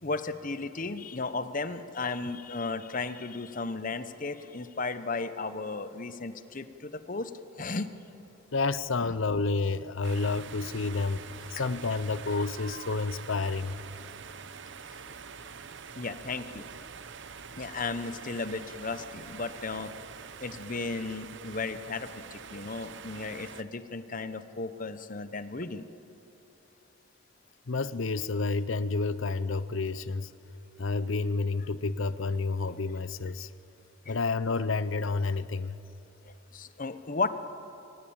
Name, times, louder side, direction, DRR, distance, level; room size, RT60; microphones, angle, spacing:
voice 1, 0.0-7.3 7.6-7.9 9.0-9.1 16.0-16.7 17.6-19.9 20.4-25.9 34.1-34.2 36.2-37.3, left 3 dB, 40° left, 12 dB, 0.9 m, -35 dB
voice 2, 8.5-13.8 27.7-30.3 30.8-33.5 34.1-35.8, left 3 dB, 70° left, 16 dB, 0.7 m, -30 dB
sound 1, 10.0-23.6, right 6 dB, 60° right, 0.8 m, -45 dB
24.0 x 19.0 x 8.8 m, 2.9 s
head